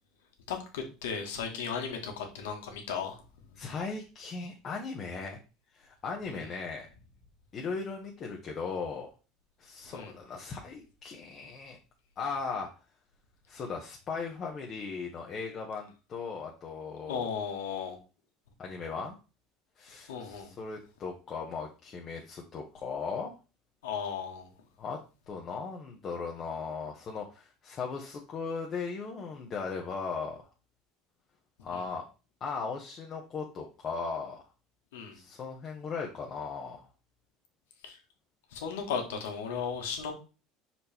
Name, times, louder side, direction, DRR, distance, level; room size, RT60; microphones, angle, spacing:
voice 1, 0.5-3.6 6.3-6.5 9.8-10.1 17.1-18.0 19.9-20.5 23.8-24.5 31.7-31.9 34.9-35.2 37.8-38.0 38.5-40.1, left 6 dB, 90° left, 1.6 m, -36 dB
voice 2, 3.6-5.4 5.7-6.9 7.5-9.1 9.6-11.8 12.2-12.7 13.5-17.3 18.6-19.1 19.8-23.3 24.8-25.0 25.3-30.4 31.6-32.0 32.4-34.4 35.1-36.8, left 5 dB, 40° left, 1.1 m, -37 dB
5.1 x 4.3 x 4.4 m
supercardioid pair, 110°, 0 cm